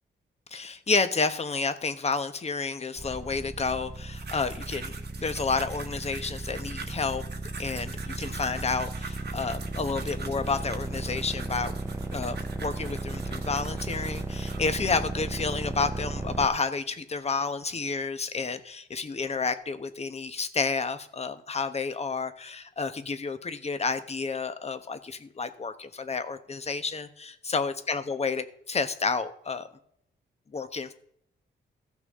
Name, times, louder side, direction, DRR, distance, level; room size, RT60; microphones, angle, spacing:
voice 1, 0.5-7.2 7.6-11.7 12.1-29.7 30.5-30.9, left 4 dB, 35° left, 10 dB, 1.0 m, -30 dB
sound 1, 3.0-16.5, right 2 dB, 15° right, 0.8 m, -35 dB
sound 2, 3.9-14.7 15.4-15.8, right 5 dB, 60° right, 1.3 m, -44 dB
16.0 x 5.9 x 3.7 m, 0.69 s
cardioid pair, 105°, 19 cm